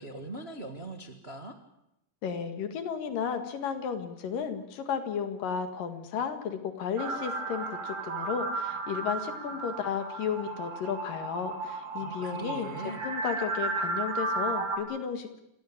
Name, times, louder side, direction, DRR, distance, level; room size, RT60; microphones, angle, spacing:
voice 1, 0.0-1.5 12.0-13.0, right 2 dB, 30° right, 4 dB, 1.2 m, -41 dB
voice 2, 2.2-12.7 13.0-15.4, left 7 dB, 70° left, 7 dB, 3.5 m, -33 dB
sound 1, 7.0-14.8, right 3 dB, 85° right, 4.5 m, -34 dB
27.0 x 16.0 x 8.7 m, 0.84 s
omnidirectional pair, 4.0 m